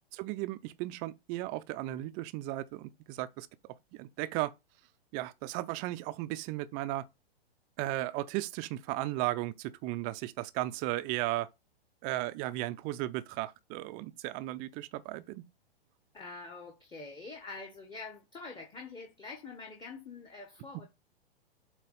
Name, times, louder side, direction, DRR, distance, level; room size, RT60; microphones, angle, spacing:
voice 1, 0.1-3.5 3.9-4.5 5.1-7.0 7.8-11.5 12.0-15.4, right 16 dB, 25° right, 0.5 m, -35 dB
voice 2, 16.1-20.9, left 3 dB, 15° left, 1.1 m, -45 dB
7.7 x 3.0 x 5.4 m
hypercardioid pair, 115°, 31 cm